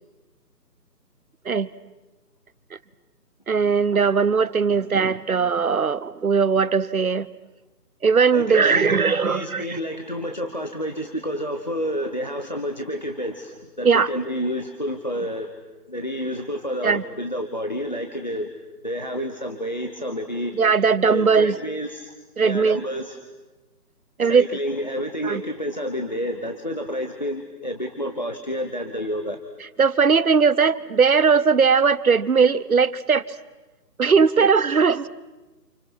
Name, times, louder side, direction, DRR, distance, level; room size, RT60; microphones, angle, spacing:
voice 1, 3.5-7.3 8.0-9.8 13.8-14.1 16.8-17.0 20.5-21.6 22.4-22.8 24.2-24.5 25.2-25.4 29.8-33.2 34.0-35.1, right 5 dB, 60° right, 18 dB, 1.0 m, -19 dB
voice 2, 8.3-15.5 15.9-18.5 18.8-20.5 21.0-22.1 22.4-23.2 24.2-29.4 34.4-34.5, equal, 25° left, 6 dB, 1.0 m, -29 dB
29.5 x 28.5 x 6.1 m, 1.1 s
hypercardioid pair, 175°, 49 cm